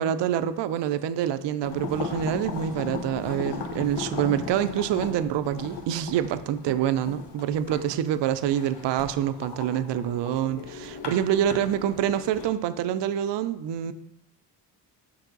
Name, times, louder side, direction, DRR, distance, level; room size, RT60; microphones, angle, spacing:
voice 1, 0.0-13.9, right 10 dB, 65° right, 13 dB, 0.6 m, -26 dB
sound 1, 1.6-12.5, left 5 dB, 60° left, 1.1 m, -37 dB
5.4 x 4.6 x 3.9 m, 0.82 s
supercardioid pair, 60°, 46 cm